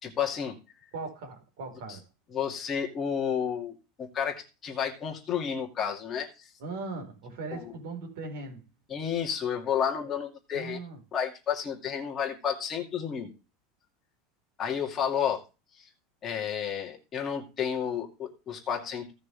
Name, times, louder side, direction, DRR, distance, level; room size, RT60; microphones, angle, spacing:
voice 1, 0.0-0.6 1.9-2.0 2.3-6.5 7.5-7.7 8.9-10.8 11.1-13.3 14.6-15.4 15.7-15.9 16.2-19.1, left 8 dB, 20° left, 2.3 m, -31 dB
voice 2, 0.9-2.0 6.6-8.6 10.5-11.0, right 3 dB, 60° right, 4.3 m, -39 dB
16.5 x 6.5 x 3.4 m
supercardioid pair, 180°, 0 cm